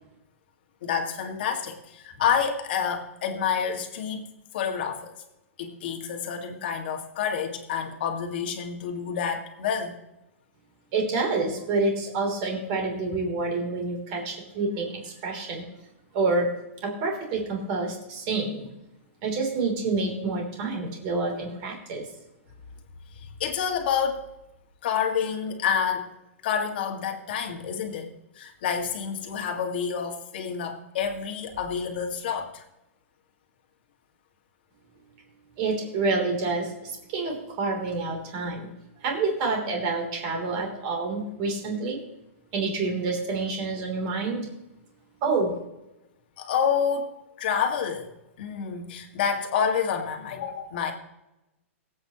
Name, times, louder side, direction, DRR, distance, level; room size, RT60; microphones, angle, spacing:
voice 1, 0.8-4.2 4.5-5.1 5.6-10.0 23.1-24.3 24.8-26.1 26.4-32.6 46.4-47.1 47.4-48.1 48.4-50.9, left 7 dB, 45° left, 3 dB, 1.9 m, -28 dB
voice 2, 10.9-15.7 16.1-16.5 16.8-18.7 19.2-22.1 35.6-38.7 39.0-42.0 42.5-44.5 45.2-45.6, right 3 dB, 30° right, 1 dB, 3.2 m, -28 dB
22.5 x 8.4 x 3.0 m, 0.94 s
hypercardioid pair, 175°, 7 cm